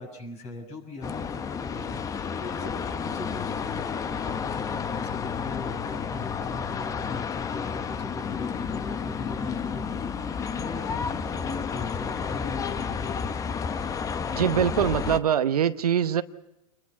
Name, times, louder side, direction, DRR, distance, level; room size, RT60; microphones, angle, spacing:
voice 1, 0.0-13.1, left 2 dB, 35° left, 1 dB, 6.7 m, -40 dB
sound 1, 1.0-15.2, left 6 dB, 15° left, 0.9 m, -31 dB
voice 2, 14.3-16.2, right 9 dB, 75° right, 12 dB, 0.9 m, -23 dB
28.0 x 21.5 x 5.8 m, 0.89 s
hypercardioid pair, 110°, 20 cm